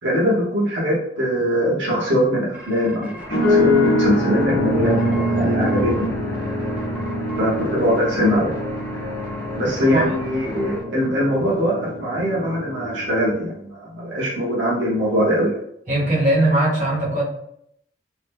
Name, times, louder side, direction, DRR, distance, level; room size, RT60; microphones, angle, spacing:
voice 1, 0.0-6.1 7.4-8.5 9.5-15.6, equal, 90° right, -6 dB, 1.0 m, -22 dB
sound 1, 2.5-3.9 4.4-4.5 4.8-6.1 6.3-11.5, equal, 10° right, 0.5 m, -38 dB
sound 2, 3.2-10.8, equal, 15° left, 0.9 m, -38 dB
sound 3, 3.3-13.3, left 1 dB, 60° left, 0.7 m, -24 dB
voice 2, 9.8-10.1 15.9-17.2, right 1 dB, 45° right, -6 dB, 1.1 m, -20 dB
2.9 x 2.0 x 3.4 m, 0.72 s
head